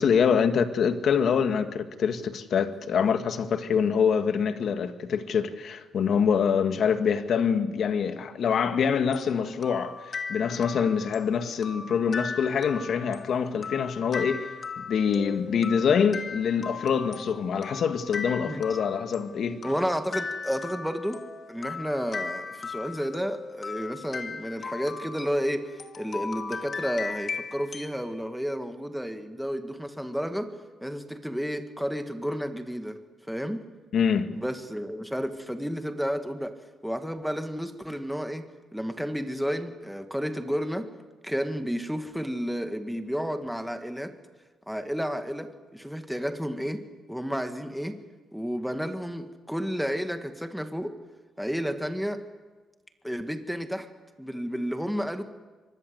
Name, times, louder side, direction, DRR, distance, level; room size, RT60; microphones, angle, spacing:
voice 1, 0.0-10.0 10.3-14.5 14.8-19.6 33.9-34.3, left 7 dB, 60° left, 1.9 m, -25 dB
sound 1, 9.1-28.0, left 4 dB, 45° left, 2.5 m, -38 dB
voice 2, 19.6-21.2 21.5-25.6 26.0-30.5 30.8-33.0 33.3-33.6 34.3-36.5 36.8-38.5 38.7-40.9 41.2-44.1 44.7-46.8 47.1-48.0 48.3-50.9 51.4-52.2 53.0-53.9 54.2-55.2, equal, ahead, 2.0 m, -31 dB
24.5 x 20.0 x 8.1 m
cardioid pair, 90°, 0 cm